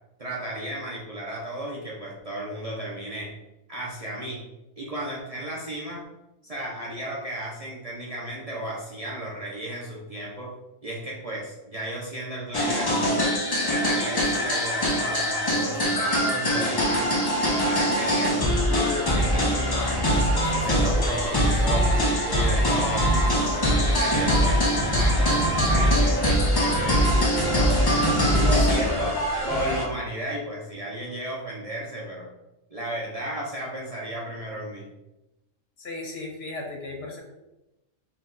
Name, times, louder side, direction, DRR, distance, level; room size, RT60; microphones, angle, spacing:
voice 1, 0.2-3.3 3.7-4.4 4.8-6.1 6.4-10.5 10.8-13.4 13.6-17.1 17.5-23.3 23.7-27.7 28.4-29.2 29.4-32.3 32.7-34.9, right 1 dB, 40° right, -5 dB, 0.6 m, -34 dB
sound 1, 12.5-29.8, equal, 30° left, 0.4 m, -22 dB
voice 2, 28.2-28.6 35.8-37.2, left 2 dB, 60° left, 1 dB, 0.9 m, -36 dB
4.4 x 2.3 x 3.8 m, 0.95 s
omnidirectional pair, 1.3 m